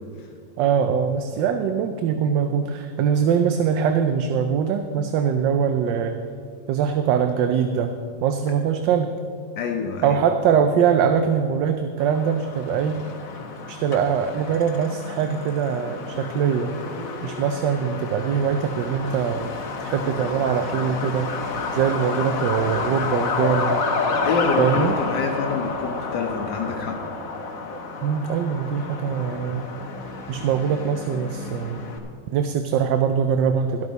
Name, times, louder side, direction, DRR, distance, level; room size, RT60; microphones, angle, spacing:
voice 1, 0.6-6.2 6.7-9.1 10.0-13.0 13.7-16.8 17.2-19.5 19.8-21.3 21.7-23.9 24.6-25.0 28.0-29.6 30.3-31.8 32.3-33.9, right 7 dB, 80° right, 7 dB, 1.3 m, -22 dB
voice 2, 9.6-10.2 24.2-27.0, left 5 dB, 75° left, 2 dB, 1.4 m, -26 dB
Truck, 12.0-32.0, left 4 dB, 55° left, 1.3 m, -30 dB
12.5 x 12.5 x 4.0 m, 2.3 s
omnidirectional pair, 2.0 m